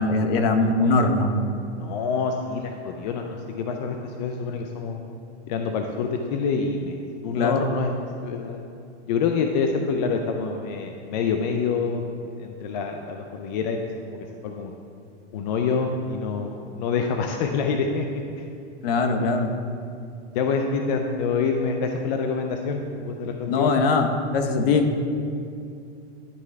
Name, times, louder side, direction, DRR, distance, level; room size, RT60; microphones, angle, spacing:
voice 1, 0.0-1.3 7.3-7.7 18.8-19.5 23.5-24.1 24.3-24.9, left 3 dB, 55° left, 5 dB, 0.8 m, -21 dB
voice 2, 1.7-5.0 5.5-7.9 8.2-8.6 9.1-12.0 12.4-13.8 14.1-14.7 15.3-18.5 20.3-23.7, left 5 dB, 40° left, 3 dB, 0.4 m, -26 dB
10.5 x 4.6 x 3.3 m, 2.5 s
supercardioid pair, 160°, 34 cm